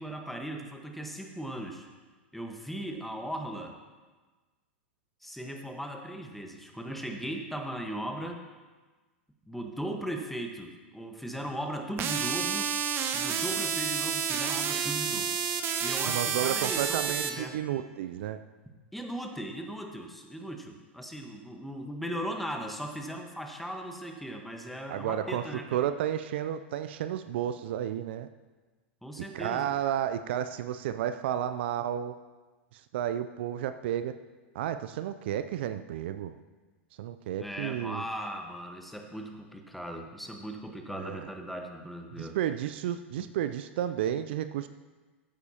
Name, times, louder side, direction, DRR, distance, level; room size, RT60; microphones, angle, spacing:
voice 1, 0.0-1.9 2.3-3.8 5.2-8.5 9.5-12.7 13.1-15.3 15.8-17.6 18.9-25.7 29.0-29.7 37.4-42.4 43.2-43.3, equal, ahead, 4 dB, 1.2 m, -38 dB
sound 1, 12.0-17.3, right 7 dB, 40° right, 0.9 m, -30 dB
voice 2, 16.1-18.4 24.9-28.3 29.3-32.2 32.7-34.2 34.5-36.4 37.0-38.1 40.9-41.3 42.2-44.7, right 10 dB, 60° right, 11 dB, 0.4 m, -32 dB
14.0 x 8.5 x 2.9 m, 1.3 s
figure-of-eight pair, 95°, 7 cm